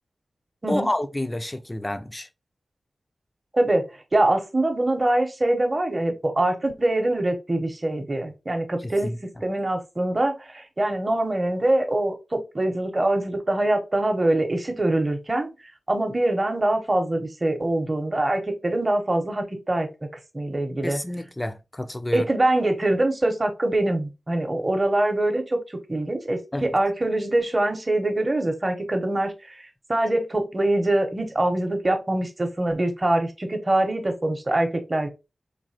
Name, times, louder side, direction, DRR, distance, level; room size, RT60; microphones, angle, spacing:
voice 1, 0.7-2.3 8.8-9.2 20.8-22.3 26.5-26.7, left 1 dB, 15° left, 0.4 m, -29 dB
voice 2, 3.5-9.1 9.4-15.5 15.9-19.9 20.3-21.0 22.1-25.6 25.9-35.1, right 1 dB, 30° right, 0.8 m, -24 dB
3.9 x 2.6 x 2.8 m
wide cardioid pair, 80°, 0 cm